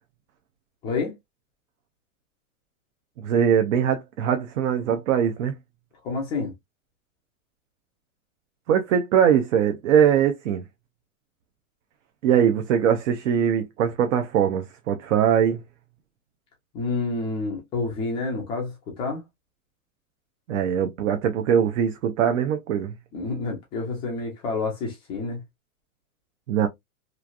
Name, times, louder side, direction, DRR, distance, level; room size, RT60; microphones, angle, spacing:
voice 1, 0.8-1.1 6.0-6.5 16.7-19.2 23.1-25.4, left 3 dB, 15° left, 0.3 m, -29 dB
voice 2, 3.2-5.5 8.7-10.6 12.2-15.6 20.5-22.9 26.5-26.7, right 8 dB, 60° right, 0.7 m, -21 dB
3.1 x 2.5 x 2.3 m
hypercardioid pair, 140°, 42 cm